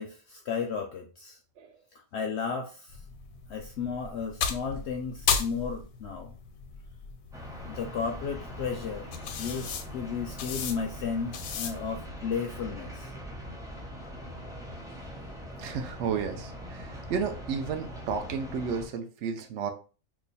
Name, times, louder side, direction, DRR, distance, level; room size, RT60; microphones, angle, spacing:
voice 1, 0.0-1.4 2.1-3.0 3.5-6.3 7.7-9.1 9.4-13.1, left 6 dB, 65° left, 2 dB, 0.7 m, -34 dB
sound 1, 2.9-12.0, left 6 dB, 85° left, 1.0 m, -36 dB
sound 2, 7.3-18.9, equal, 5° right, 0.5 m, -42 dB
voice 2, 15.6-19.7, right 6 dB, 65° right, 6 dB, 0.8 m, -32 dB
3.0 x 2.3 x 4.0 m, 0.35 s
omnidirectional pair, 1.4 m